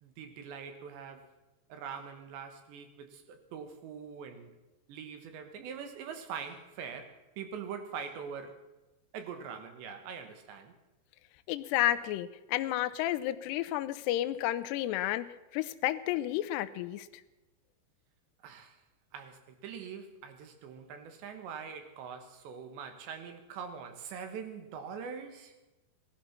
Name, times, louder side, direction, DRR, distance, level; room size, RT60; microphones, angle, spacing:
voice 1, 0.0-1.3 1.7-4.5 4.9-8.6 9.1-10.7 18.4-18.8 19.1-25.6, right 6 dB, 75° right, 3.6 m, -43 dB
voice 2, 11.5-17.2, left 14 dB, 80° left, 2.6 m, -31 dB
18.5 x 12.5 x 5.9 m
omnidirectional pair, 5.2 m